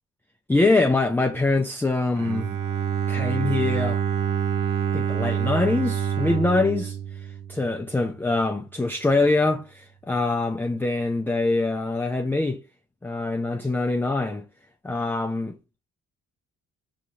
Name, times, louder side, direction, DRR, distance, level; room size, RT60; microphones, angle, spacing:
voice 1, 0.5-2.6 3.1-4.0 4.9-12.6 13.0-14.4 14.8-15.5, left 2 dB, 5° left, 0.4 m, -24 dB
Bowed string instrument, 2.2-8.1, right 8 dB, 85° right, 0.6 m, -27 dB
4.7 x 2.9 x 2.6 m
cardioid pair, 90°, 30 cm